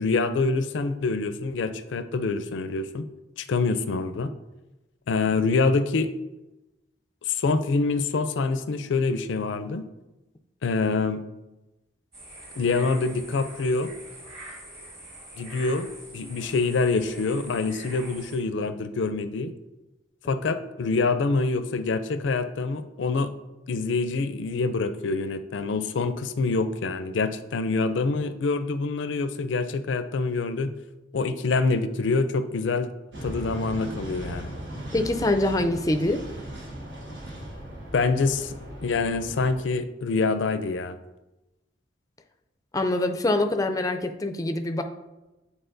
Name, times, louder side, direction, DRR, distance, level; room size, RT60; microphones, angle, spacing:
voice 1, 0.0-3.0 3.4-4.3 5.1-6.1 7.3-9.9 10.6-11.2 12.5-13.9 15.4-19.5 20.3-23.3 23.7-30.7 31.1-32.9 33.2-34.5 37.9-38.5 38.8-41.0, left 3 dB, 85° left, 10 dB, 0.4 m, -26 dB
sound 1, 12.1-18.4, right 1 dB, 35° right, 1.9 m, -44 dB
sound 2, 33.1-39.6, right 1 dB, 70° right, 1.3 m, -38 dB
voice 2, 34.9-36.2 42.7-44.8, left 1 dB, 20° left, 7 dB, 0.4 m, -24 dB
9.0 x 4.1 x 2.6 m, 1.0 s
head